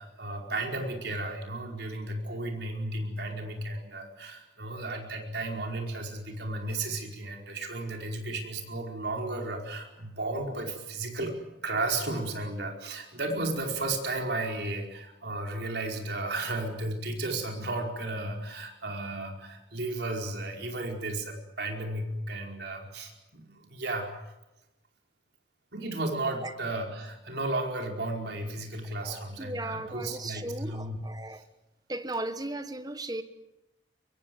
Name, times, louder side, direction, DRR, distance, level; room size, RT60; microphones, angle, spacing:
voice 1, 0.0-11.4 11.6-24.2 25.7-31.0, right 2 dB, 60° right, 4.9 m, -34 dB
voice 2, 29.0-31.4 31.9-33.2, right 2 dB, 20° right, 1.4 m, -36 dB
24.0 x 22.5 x 7.9 m
head